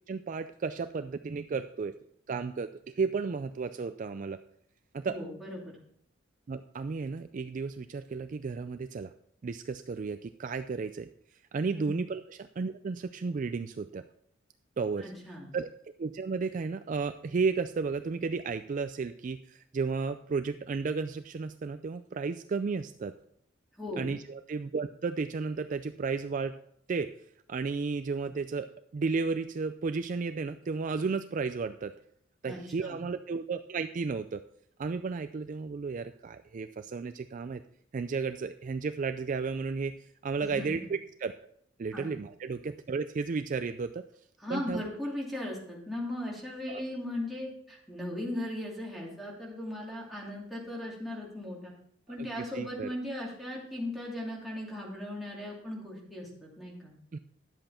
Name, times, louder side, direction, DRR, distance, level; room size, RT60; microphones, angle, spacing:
voice 1, 0.1-2.0 2.3-4.4 4.9-5.2 6.5-9.1 9.4-11.1 11.5-14.0 14.8-15.1 15.5-15.7 16.0-23.1 24.0-26.6 26.9-27.1 27.5-31.9 32.4-34.4 34.8-37.6 37.9-41.3 41.8-44.0 44.5-44.8 46.7-46.8 52.4-53.0 57.1-57.2, right 4 dB, 40° right, 10 dB, 0.3 m, -33 dB
voice 2, 5.1-5.8 11.8-11.9 15.0-15.5 23.8-24.1 32.4-33.0 40.4-40.8 41.9-42.2 44.4-51.7 52.1-56.9, left 1 dB, ahead, -4 dB, 2.6 m, -38 dB
11.0 x 7.8 x 4.3 m, 0.67 s
head